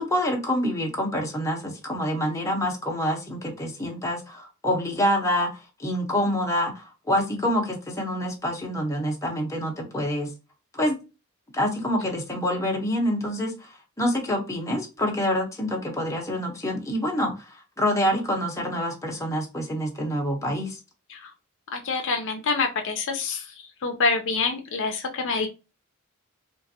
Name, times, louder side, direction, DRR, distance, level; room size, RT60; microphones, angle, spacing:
voice 1, 0.0-5.5 5.8-10.3 10.7-11.0 11.5-13.7 14.0-17.3 17.8-20.8, equal, 15° left, 0 dB, 0.8 m, -26 dB
voice 2, 21.7-23.4 23.8-25.5, left 4 dB, 60° left, 4 dB, 0.6 m, -26 dB
3.8 x 2.5 x 2.7 m, 0.29 s
head